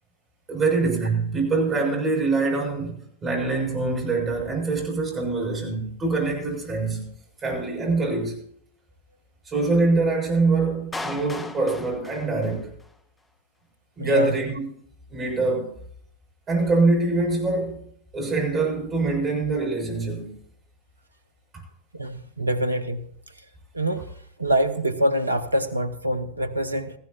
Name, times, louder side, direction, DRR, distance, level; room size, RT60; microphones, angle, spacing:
voice 1, 0.5-7.0 7.4-8.4 9.5-12.7 14.0-14.6 15.1-15.7 16.5-17.8 18.1-20.3, right 3 dB, 20° right, -1 dB, 6.7 m, -24 dB
Clapping, 10.9-13.0, left 2 dB, 10° left, 0.9 m, -36 dB
voice 2, 14.0-14.4 21.9-23.0 23.7-24.1 24.4-26.9, right 1 dB, 85° right, 10 dB, 0.9 m, -25 dB
18.5 x 15.0 x 2.9 m, 0.64 s
figure-of-eight pair, 90°, 0 cm